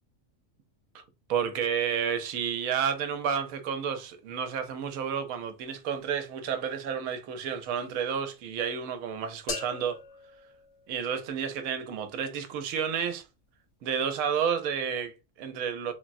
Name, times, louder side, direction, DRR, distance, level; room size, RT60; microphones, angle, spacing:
voice 1, 1.3-10.0 10.9-13.2 13.8-15.9, right 7 dB, 80° right, 1.0 m, -31 dB
sound 1, 9.5-11.5, left 4 dB, 60° left, 0.8 m, -40 dB
3.5 x 2.0 x 2.5 m
omnidirectional pair, 1.5 m